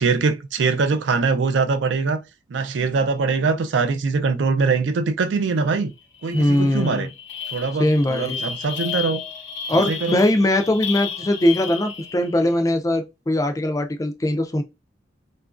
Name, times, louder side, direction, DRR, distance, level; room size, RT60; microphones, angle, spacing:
voice 1, 0.0-2.2 2.5-5.9 6.2-7.1 7.5-9.2 9.7-10.2, right 4 dB, 75° right, 0.4 m, -22 dB
sound 1, 5.5-5.7 6.0-12.4, left 7 dB, 70° left, 0.7 m, -33 dB
voice 2, 6.3-7.1 7.8-8.4 9.7-14.6, left 1 dB, 20° left, 0.3 m, -21 dB
2.9 x 2.4 x 2.4 m
head